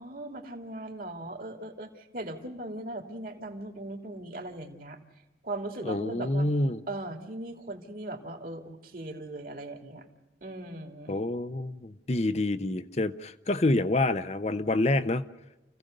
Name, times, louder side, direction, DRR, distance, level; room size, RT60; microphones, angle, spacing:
voice 1, 0.0-5.0 5.4-6.5 6.9-10.0 10.4-11.2, right 1 dB, 50° right, 5 dB, 2.7 m, -39 dB
voice 2, 5.8-6.8 11.1-15.2, left 2 dB, 40° left, 11 dB, 0.7 m, -27 dB
29.0 x 16.0 x 6.6 m, 1.0 s
head